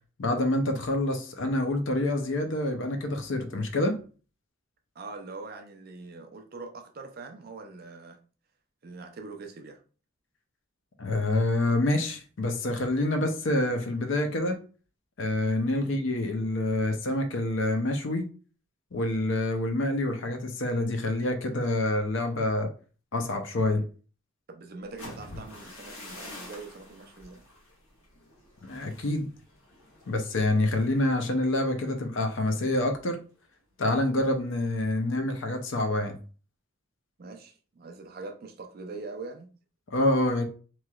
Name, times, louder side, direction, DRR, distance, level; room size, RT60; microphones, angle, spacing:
voice 1, 0.2-4.0 11.0-14.6 15.2-18.3 18.9-22.7 23.1-23.8 28.6-29.3 30.1-33.2 33.8-36.2 39.9-40.4, left 1 dB, 65° left, 0.6 m, -27 dB
voice 2, 5.0-8.2 8.8-9.8 15.8-15.9 24.5-27.4 37.2-39.5, right 3 dB, 45° right, 0.4 m, -43 dB
sound 1, 24.8-32.7 33.0-33.4 33.7-34.1, left 1 dB, 85° left, 1.2 m, -48 dB
3.0 x 2.9 x 2.3 m
head